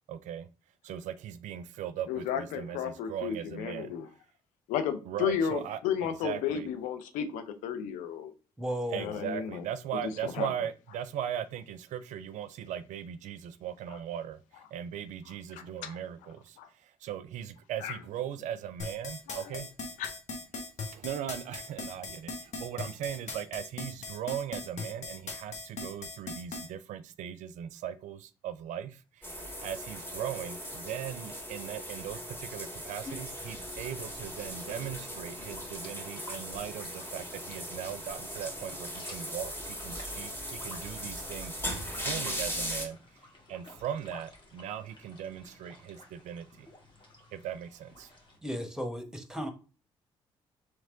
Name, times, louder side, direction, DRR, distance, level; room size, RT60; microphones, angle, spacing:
voice 1, 0.1-0.5 0.8-3.9 5.1-6.7 8.9-19.7 20.9-41.6 41.9-43.0 43.5-46.7 47.3-48.1, right 10 dB, 65° right, 0.4 m, -39 dB
voice 2, 2.1-4.0 4.7-8.3 8.9-9.6 10.0-10.5 15.8-16.0 16.6-16.7 17.8-18.0 19.5-19.6 20.0-20.1, left 8 dB, 75° left, 0.6 m, -33 dB
voice 3, 8.6-9.2 48.4-49.5, equal, 5° right, 1.1 m, -35 dB
sound 1, 18.8-26.7, left 3 dB, 55° left, 1.2 m, -39 dB
sound 2, 29.2-42.9, equal, 15° left, 1.6 m, -39 dB
sound 3, 33.0-48.4, left 2 dB, 40° left, 1.4 m, -52 dB
3.3 x 3.2 x 3.7 m
hypercardioid pair, 45°, 13 cm